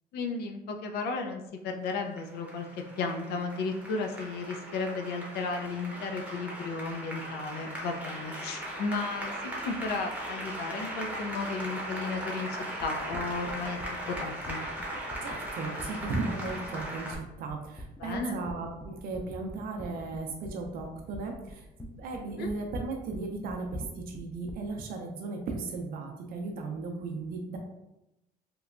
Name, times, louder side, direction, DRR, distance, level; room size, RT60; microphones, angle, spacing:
voice 1, 0.1-2.7 3.0-13.8 14.0-14.6 18.0-18.4 22.4-22.5, left 4 dB, 75° left, 4 dB, 0.5 m, -34 dB
Applause, 1.8-17.1, right 1 dB, 10° right, 0.7 m, -38 dB
sound 1, 12.8-24.7, equal, 5° left, 0.3 m, -45 dB
voice 2, 15.2-21.7 22.0-27.6, right 3 dB, 60° right, 2 dB, 0.5 m, -36 dB
2.9 x 2.1 x 2.4 m, 0.91 s
cardioid pair, 110°, 17 cm